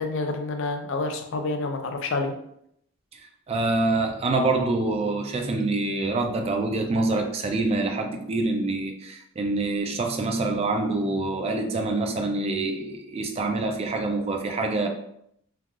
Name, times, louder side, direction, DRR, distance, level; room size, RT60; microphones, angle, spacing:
voice 1, 0.0-2.3, left 3 dB, 65° left, 5 dB, 0.4 m, -28 dB
voice 2, 3.5-14.9, right 2 dB, 30° right, 5 dB, 0.3 m, -26 dB
3.2 x 2.3 x 2.3 m, 0.73 s
head